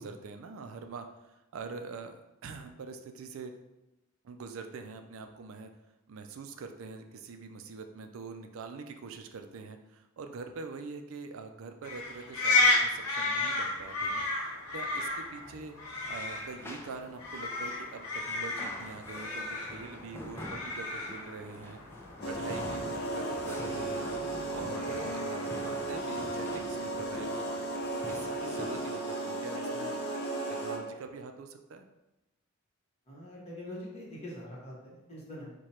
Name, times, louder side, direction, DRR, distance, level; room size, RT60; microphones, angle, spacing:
voice 1, 0.0-3.5 4.2-5.7 6.1-14.2 14.7-15.7 16.1-21.8 22.3-24.1 24.5-27.5 28.1-29.9 30.5-31.9, right 4 dB, 65° right, 6 dB, 0.4 m, -44 dB
sound 1, 11.8-25.9, left 2 dB, 90° left, 0.9 m, -33 dB
sound 2, 16.0-28.8, left 1 dB, 10° left, 0.4 m, -47 dB
sound 3, 22.2-31.0, right 2 dB, 50° left, 0.8 m, -35 dB
voice 2, 33.1-35.5, left 1 dB, 30° left, -5 dB, 1.2 m, -44 dB
4.7 x 2.2 x 4.3 m, 0.96 s
head